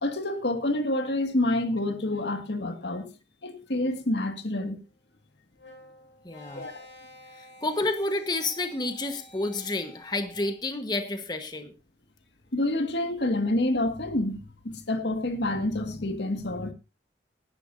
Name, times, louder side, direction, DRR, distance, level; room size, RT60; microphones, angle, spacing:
voice 1, 0.0-3.1 3.4-4.8 6.5-6.9 12.5-16.7, left 1 dB, 70° left, 1.9 m, -28 dB
sound 1, 5.6-10.7, left 1 dB, 85° left, 5.6 m, -51 dB
voice 2, 6.2-6.6 7.6-11.7, left 2 dB, 25° left, 1.3 m, -30 dB
19.0 x 11.5 x 2.7 m
head